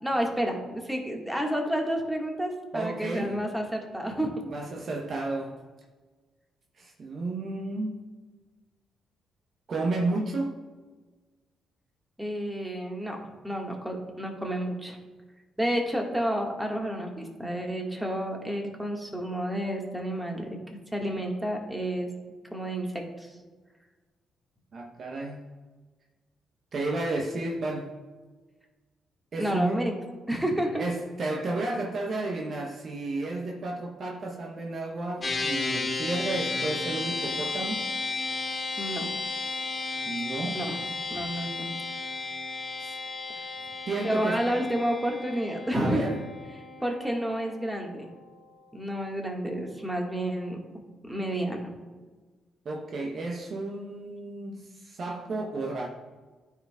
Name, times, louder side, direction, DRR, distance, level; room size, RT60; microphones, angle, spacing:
voice 1, 0.0-4.5 12.2-15.0 15.6-20.6 20.9-22.1 22.5-23.3 29.4-29.9 30.3-30.8 38.8-39.1 40.5-40.8 41.1-41.7 44.0-46.2 46.8-48.1 48.7-50.6 51.1-51.7, right 1 dB, 10° right, 1 dB, 1.7 m, -30 dB
voice 2, 2.7-3.4 4.5-5.6 6.8-8.0 9.7-10.6 24.7-25.5 26.7-27.9 29.3-29.8 30.8-37.8 40.1-40.7 42.8-42.9 43.9-44.4 45.7-46.2 52.6-55.9, right 2 dB, 55° right, 1 dB, 0.9 m, -32 dB
sound 1, 35.2-48.8, left 3 dB, 35° left, 1.4 m, -34 dB
13.0 x 4.7 x 2.4 m, 1.3 s
hypercardioid pair, 45°, 0 cm